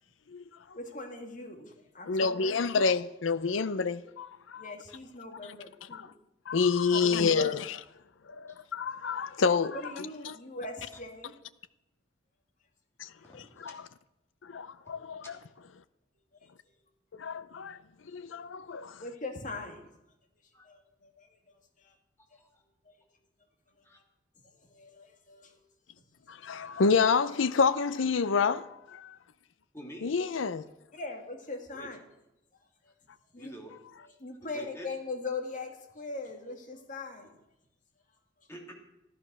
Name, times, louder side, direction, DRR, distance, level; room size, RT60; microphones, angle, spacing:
voice 1, 0.7-2.6 4.6-6.1 6.9-7.6 9.7-11.3 16.4-16.5 19.0-19.9 20.6-21.9 22.8-22.9 23.8-23.9 24.4-25.6 26.5-26.8 30.9-32.0 32.6-32.9 33.3-33.6 34.2-37.3, left 3 dB, 40° left, 2.2 m, -41 dB
voice 2, 2.1-4.6 5.9-6.0 6.5-7.6 8.3-9.8 10.3-10.4 13.0-13.1 13.6-13.8 14.4-15.2 17.2-17.8 18.1-19.0 26.3-29.1 30.0-30.7, left 5 dB, 85° left, 0.6 m, -28 dB
voice 3, 13.2-13.8 14.8-14.9 20.5-20.7 22.3-22.6 23.8-24.0 29.7-30.1 31.7-31.9 33.4-33.7 34.0-34.1 34.5-34.9 38.5-38.7, right 1 dB, 15° left, 3.0 m, -47 dB
14.0 x 12.0 x 6.2 m
head